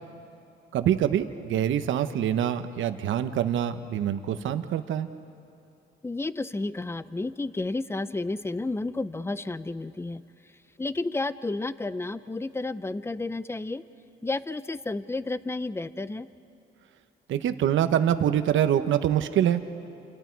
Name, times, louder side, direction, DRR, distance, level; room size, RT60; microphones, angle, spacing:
voice 1, 0.7-5.1 17.3-19.6, right 10 dB, 75° right, 10 dB, 1.1 m, -25 dB
voice 2, 6.0-10.2 10.8-13.8 14.2-16.3, left 2 dB, 10° left, 14 dB, 0.7 m, -31 dB
28.5 x 28.5 x 4.7 m, 2.7 s
cardioid pair, 90°, 20 cm